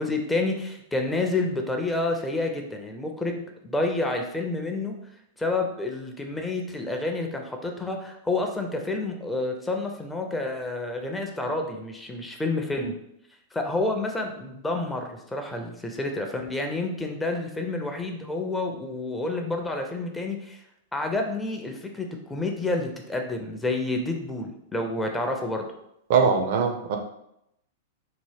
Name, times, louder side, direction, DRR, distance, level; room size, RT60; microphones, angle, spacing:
voice 1, 0.0-4.9 5.4-13.0 13.5-20.6 20.9-25.7, left 2 dB, 10° left, 3 dB, 0.4 m, -29 dB
voice 2, 26.1-27.0, right 5 dB, 50° right, 4 dB, 0.5 m, -21 dB
2.9 x 2.0 x 3.3 m, 0.78 s
figure-of-eight pair, 100°, 0 cm